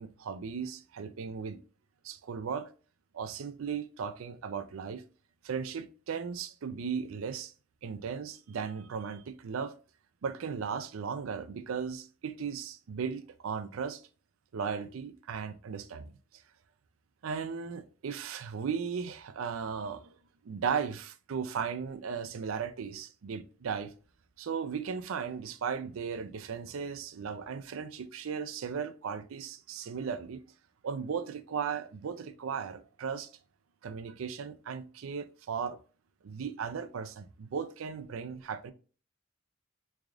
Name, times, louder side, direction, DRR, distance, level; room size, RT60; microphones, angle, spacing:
voice 1, 0.0-1.6 2.0-2.7 3.1-5.0 5.4-7.5 7.8-9.7 10.2-14.0 14.5-16.1 17.2-20.1 20.4-23.9 24.4-30.4 30.8-33.3 33.8-35.8 36.2-38.7, right 6 dB, 90° right, 0.4 m, -36 dB
3.6 x 3.4 x 2.3 m
head